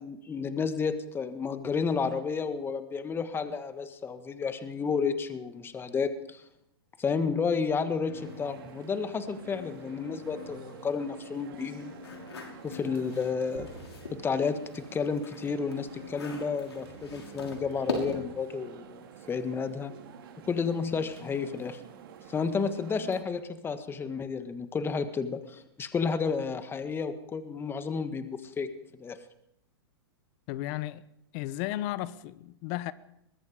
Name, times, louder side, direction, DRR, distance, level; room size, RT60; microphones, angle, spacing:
voice 1, 0.0-6.4 7.0-11.9 12.6-13.7 14.1-19.9 20.4-21.8 22.3-29.2, left 5 dB, 15° left, 1.7 m, -31 dB
sound 1, 8.1-16.5, left 6 dB, 65° left, 4.2 m, -50 dB
sound 2, 8.1-23.2, right 8 dB, 60° right, 4.3 m, -49 dB
sound 3, 12.0-14.2 14.6-18.4, left 3 dB, 90° left, 6.0 m, -40 dB
voice 2, 30.5-31.0 31.3-32.9, left 15 dB, 45° left, 1.3 m, -34 dB
23.5 x 21.5 x 5.2 m
hypercardioid pair, 115°, 13 cm